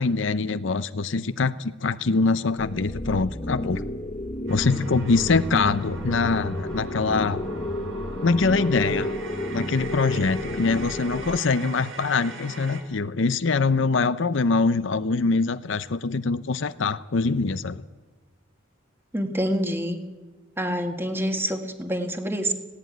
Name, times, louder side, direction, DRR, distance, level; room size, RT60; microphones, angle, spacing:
voice 1, 0.0-3.8 4.5-7.4 8.2-9.1 9.5-17.8, left 4 dB, 65° left, 13 dB, 0.7 m, -24 dB
sound 1, 2.6-11.4, left 1 dB, 30° left, 1.0 m, -32 dB
sound 2, 4.5-12.8, right 1 dB, 85° right, 3.9 m, -37 dB
voice 2, 19.1-20.0 20.6-22.5, equal, 10° right, 6 dB, 1.7 m, -27 dB
19.0 x 16.0 x 9.3 m, 1.4 s
head